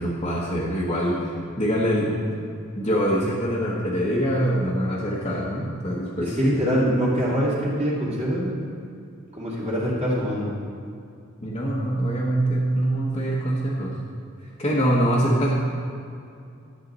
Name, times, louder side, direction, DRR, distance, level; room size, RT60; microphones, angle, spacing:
voice 1, 0.0-2.1 2.8-6.4 11.4-14.0 14.6-15.5, right 1 dB, 30° left, -7 dB, 1.0 m, -24 dB
voice 2, 6.2-8.5 9.3-10.5, equal, 30° right, -6 dB, 2.4 m, -24 dB
12.0 x 7.4 x 4.0 m, 2.5 s
head